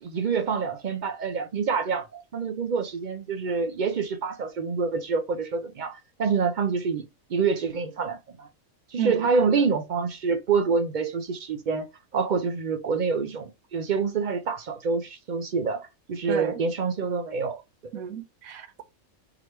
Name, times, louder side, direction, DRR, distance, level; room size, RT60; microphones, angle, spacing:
voice 1, 0.0-7.0 7.3-8.5 8.9-15.8 16.1-17.6 17.9-18.0, right 5 dB, 65° right, 0.4 m, -27 dB
voice 2, 17.9-18.9, right 9 dB, 85° right, 1.2 m, -32 dB
3.9 x 3.0 x 3.2 m
omnidirectional pair, 1.4 m